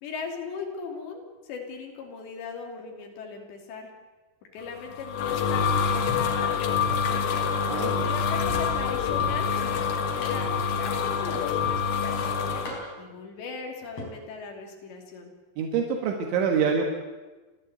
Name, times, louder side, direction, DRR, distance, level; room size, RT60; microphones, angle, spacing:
voice 1, 0.0-3.9 4.5-7.5 8.0-15.3, left 5 dB, 65° left, 1 dB, 4.9 m, -39 dB
sound 1, 4.7-12.7, left 6 dB, 85° left, 4.6 m, -26 dB
voice 2, 7.7-8.0 15.6-16.8, right 6 dB, 75° right, 2 dB, 3.9 m, -25 dB
sound 2, 9.2-9.5 10.2-10.6 11.3-11.8 12.6-13.1 13.8-14.1, left 1 dB, 35° left, 5.0 m, -38 dB
30.0 x 12.5 x 8.0 m, 1.3 s
omnidirectional pair, 5.5 m